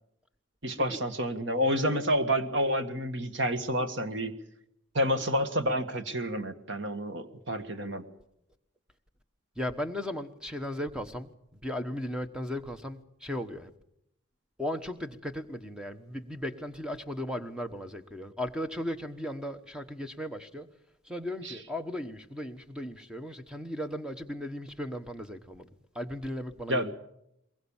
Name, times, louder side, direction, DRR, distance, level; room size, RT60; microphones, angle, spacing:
voice 1, 0.6-4.3 4.9-8.0 21.4-21.5 26.7-26.9, equal, 65° right, 9 dB, 1.7 m, -29 dB
voice 2, 9.6-11.3 11.6-13.7 14.6-20.7 21.0-25.7 25.9-26.9, left 1 dB, 5° right, 7 dB, 1.1 m, -36 dB
22.5 x 21.0 x 7.2 m, 0.79 s
head